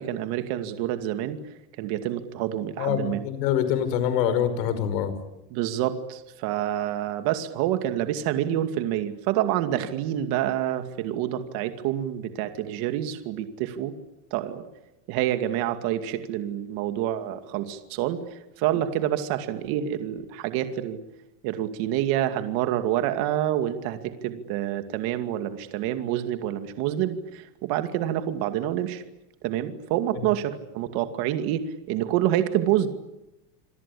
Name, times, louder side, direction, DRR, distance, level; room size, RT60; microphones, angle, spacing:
voice 1, 0.0-1.4 1.8-3.2 5.5-13.9 14.3-14.7 15.1-21.0 21.4-29.0 29.4-31.6 31.9-32.9, right 12 dB, 50° right, 8 dB, 2.5 m, -27 dB
voice 2, 2.8-5.2, left 9 dB, 90° left, 12 dB, 5.4 m, -25 dB
28.0 x 23.0 x 8.7 m, 0.93 s
cardioid pair, 170°, 48 cm